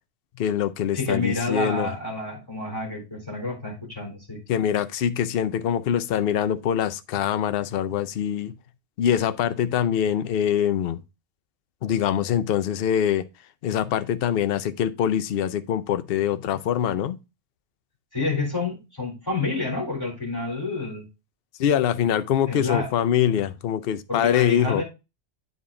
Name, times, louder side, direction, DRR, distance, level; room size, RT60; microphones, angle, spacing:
voice 1, 0.4-1.9 4.5-8.5 9.0-11.0 11.8-13.2 13.6-17.2 21.6-24.8, left 9 dB, 60° left, 0.7 m, -24 dB
voice 2, 0.9-4.4 18.1-21.1 22.5-22.9 24.1-24.8, left 3 dB, 20° left, 3.7 m, -28 dB
8.7 x 4.2 x 3.6 m
omnidirectional pair, 1.2 m